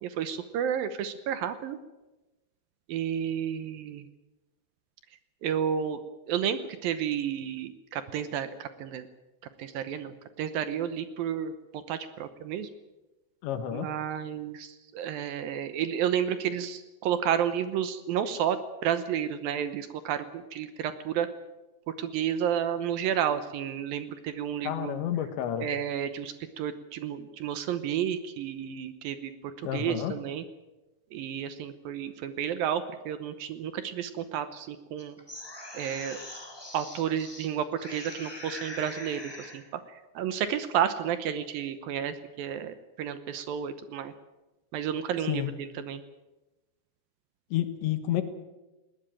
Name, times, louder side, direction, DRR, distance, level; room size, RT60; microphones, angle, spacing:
voice 1, 0.0-1.8 2.9-4.1 5.4-6.0 6.3-9.1 9.6-12.7 13.7-21.3 21.9-24.9 25.6-30.4 31.1-35.2 35.7-36.2 36.7-44.1 44.7-46.0, right 9 dB, 70° right, 11 dB, 2.3 m, -31 dB
voice 2, 13.4-13.9 24.7-25.7 29.6-30.1 45.3-45.5 47.5-48.2, left 11 dB, 85° left, 9 dB, 3.7 m, -30 dB
sound 1, 35.0-37.5 37.8-39.6, left 1 dB, 5° left, 3.0 m, -42 dB
20.5 x 18.0 x 9.0 m, 1.1 s
omnidirectional pair, 5.0 m